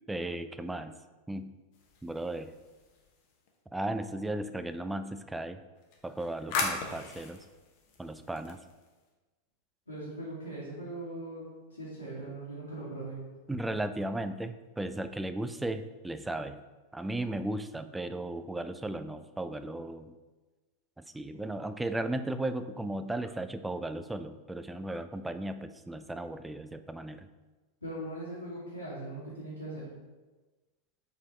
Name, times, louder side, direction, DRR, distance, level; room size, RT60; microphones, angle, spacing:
voice 1, 0.1-1.0 1.3-1.5 2.0-2.5 3.7-5.6 6.0-7.4 8.0-8.6 13.5-16.6 16.9-20.1 21.0-27.3, right 1 dB, 5° right, 10 dB, 0.3 m, -35 dB
sound 1, 1.7-3.5 5.8-9.0, left 4 dB, 45° left, 1.0 m, -39 dB
voice 2, 9.9-11.4 11.7-13.2 27.8-29.8, right 1 dB, 80° left, -11 dB, 1.9 m, -40 dB
5.0 x 4.5 x 4.2 m, 1.2 s
figure-of-eight pair, 90°, 0 cm